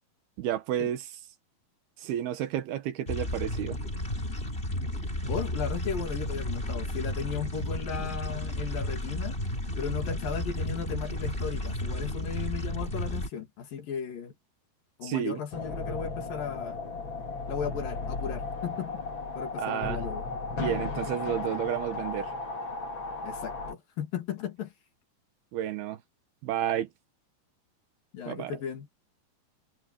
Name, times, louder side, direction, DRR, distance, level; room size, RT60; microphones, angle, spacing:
voice 1, 0.4-1.1 2.0-3.8 15.0-15.4 19.6-20.0 20.6-22.3 25.5-26.0 26.4-26.9 28.3-28.6, right 11 dB, 85° right, 3.4 m, -31 dB
sound 1, 3.1-13.3, left 1 dB, 15° left, 5.2 m, -33 dB
voice 2, 5.3-9.4 9.8-14.3 15.0-16.8 17.5-19.0 19.4-20.2 23.2-24.7 28.1-28.9, left 7 dB, 65° left, 4.3 m, -36 dB
sound 2, 15.5-23.7, left 3 dB, 35° left, 2.9 m, -35 dB
omnidirectional pair, 4.4 m